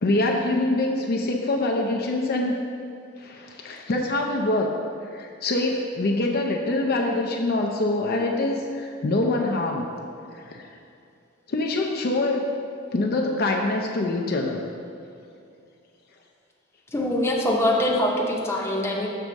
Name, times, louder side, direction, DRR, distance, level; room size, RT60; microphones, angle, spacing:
voice 1, 0.0-2.6 3.2-4.7 5.1-9.9 10.3-10.7 11.5-12.4 12.9-14.6, left 2 dB, 50° left, 1 dB, 0.5 m, -25 dB
voice 2, 16.9-19.1, left 1 dB, 15° left, -2 dB, 0.7 m, -23 dB
6.8 x 3.5 x 6.3 m, 2.5 s
head